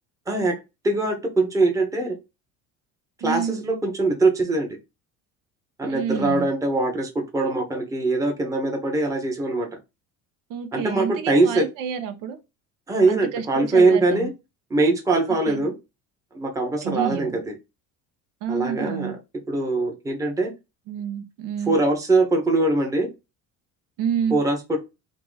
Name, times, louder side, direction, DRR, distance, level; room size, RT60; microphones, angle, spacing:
voice 1, 0.8-2.1 3.2-4.8 5.8-9.7 10.7-11.7 12.9-14.3 14.7-15.7 16.3-17.6 18.5-19.2 19.5-20.5 21.6-23.1 24.3-24.8, right 2 dB, 10° right, 0.9 m, -22 dB
voice 2, 3.2-3.5 5.8-6.5 10.5-12.4 13.1-14.3 15.5-15.6 16.8-17.4 18.4-19.1 20.9-21.8 24.0-24.4, right 8 dB, 75° right, 0.9 m, -29 dB
3.7 x 2.8 x 3.8 m
cardioid pair, 155°, 33 cm